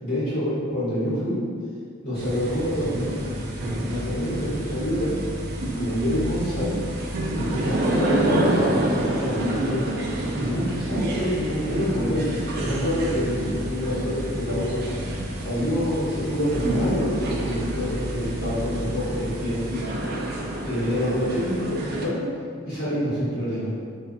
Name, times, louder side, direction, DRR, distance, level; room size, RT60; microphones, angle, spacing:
voice 1, 0.0-1.4 2.0-5.2 5.6-6.8 7.3-10.0 10.3-12.3 12.6-15.1 15.4-20.1 20.6-22.2 22.6-23.7, equal, 55° left, -11 dB, 1.2 m, -27 dB
sound 1, 2.2-22.1, right 1 dB, 50° right, 0.3 m, -28 dB
2.3 x 2.2 x 2.6 m, 2.1 s
head